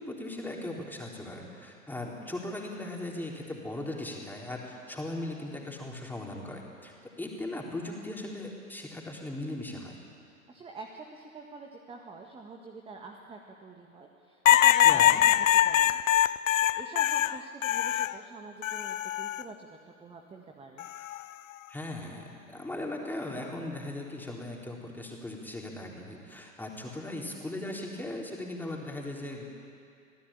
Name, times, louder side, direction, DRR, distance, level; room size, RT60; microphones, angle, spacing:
voice 1, 0.0-10.0 14.8-15.2 21.7-29.4, left 1 dB, 5° left, -1 dB, 3.8 m, -38 dB
voice 2, 10.5-16.2 16.7-20.9, right 3 dB, 15° right, 2 dB, 1.7 m, -46 dB
sound 1, 14.5-18.2 18.6-19.4 20.8-21.2, left 12 dB, 60° left, 0.7 m, -23 dB
26.5 x 17.0 x 8.9 m, 2.4 s
figure-of-eight pair, 100°, 44 cm